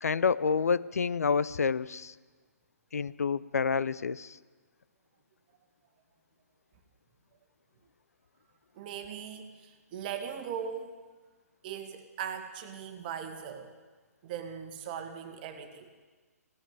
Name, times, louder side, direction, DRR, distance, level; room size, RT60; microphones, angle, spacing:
voice 1, 0.0-2.1 2.9-4.4, left 5 dB, 65° left, 18 dB, 0.4 m, -28 dB
voice 2, 8.7-11.0 11.6-13.7 14.2-15.9, right 8 dB, 35° right, 7 dB, 1.5 m, -39 dB
16.5 x 9.0 x 9.3 m, 1.4 s
figure-of-eight pair, 130°, 9 cm